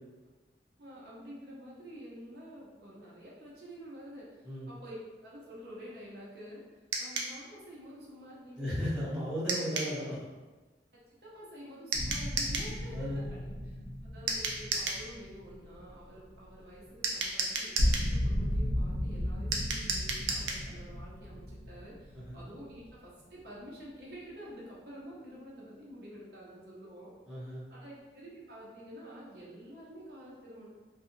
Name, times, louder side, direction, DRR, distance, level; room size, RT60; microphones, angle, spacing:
voice 1, 0.8-8.7 9.5-9.6 11.2-13.8 14.0-27.1 27.5-30.7, equal, 60° right, -5 dB, 0.8 m, -49 dB
sound 1, 6.9-7.3 9.5-9.9 11.9-12.7 14.3-15.0 17.0-18.1 19.5-20.6, right 3 dB, 85° right, 0.4 m, -33 dB
voice 2, 8.6-10.2 12.9-13.3 22.1-22.4 27.3-27.6, equal, 5° right, -12 dB, 1.0 m, -35 dB
sound 2, 11.9-16.8 17.1-17.3 17.5-23.1, equal, 65° left, 0.7 m, -35 dB
2.6 x 2.4 x 2.7 m, 1.2 s
head